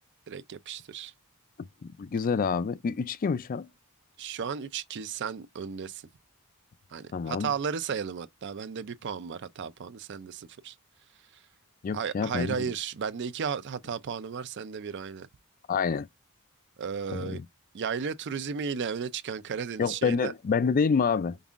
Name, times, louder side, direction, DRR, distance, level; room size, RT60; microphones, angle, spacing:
voice 1, 0.3-1.1 4.2-6.0 6.9-10.8 11.9-15.3 16.8-17.4 17.7-20.3, right 6 dB, 50° right, 0.4 m, -34 dB
voice 2, 2.0-3.7 7.1-7.5 11.8-12.7 15.7-16.1 17.1-17.5 19.8-21.4, left 5 dB, 40° left, 0.3 m, -27 dB
5.3 x 2.4 x 2.4 m
head